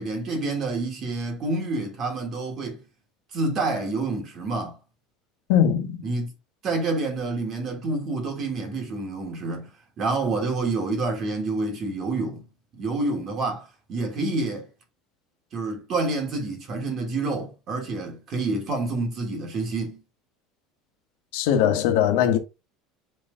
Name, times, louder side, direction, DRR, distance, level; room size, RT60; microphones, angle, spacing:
voice 1, 0.0-2.8 3.3-4.8 6.0-6.3 6.6-9.7 10.0-12.4 12.8-14.7 15.5-20.0, right 3 dB, 30° right, 1.5 m, -28 dB
voice 2, 5.5-6.0 21.3-22.4, left 9 dB, 75° left, 1.4 m, -20 dB
5.6 x 4.4 x 3.7 m
cardioid pair, 175°, 0 cm